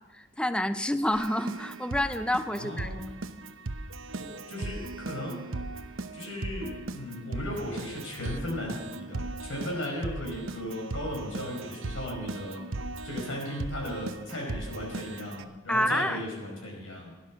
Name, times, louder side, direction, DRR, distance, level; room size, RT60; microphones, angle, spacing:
voice 1, 0.1-2.9 15.7-16.2, left 1 dB, 5° left, 11 dB, 0.6 m, -28 dB
Keyboard (musical), 1.1-15.4, right 2 dB, 75° right, 0.8 m, -38 dB
voice 2, 2.5-3.1 4.2-5.4 6.1-12.6 13.0-17.1, left 1 dB, 75° left, 0 dB, 5.1 m, -36 dB
17.0 x 11.0 x 6.3 m, 1.1 s
head